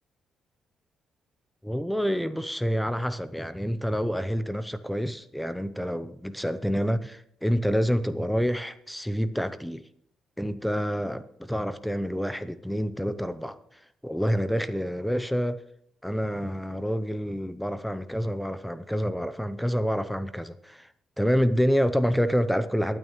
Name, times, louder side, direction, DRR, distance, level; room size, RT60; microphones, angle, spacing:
voice 1, 1.6-9.8 10.4-13.6 14.0-15.6 16.0-20.9 21.2-23.0, equal, ahead, 0.6 m, -27 dB
23.0 x 9.1 x 3.1 m
cardioid pair, 90°, 0 cm